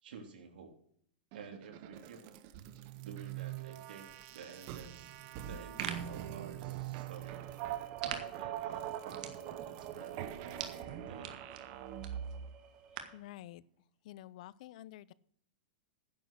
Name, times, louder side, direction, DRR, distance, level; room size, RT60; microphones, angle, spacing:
voice 1, 0.0-0.7 1.3-2.2 3.0-5.1 5.4-7.4 8.0-11.4, right 6 dB, 80° right, 3 dB, 3.3 m, -51 dB
sound 1, 1.3-12.6, right 11 dB, 35° right, 0.9 m, -43 dB
sound 2, 5.4-13.3, right 8 dB, 50° right, 1.9 m, -47 dB
sound 3, 7.2-13.2, right 8 dB, 20° right, 1.4 m, -53 dB
voice 2, 13.1-13.6 14.0-15.1, left 14 dB, 50° left, 20 dB, 0.5 m, -49 dB
10.5 x 8.0 x 6.3 m, 0.64 s
supercardioid pair, 165°, 5 cm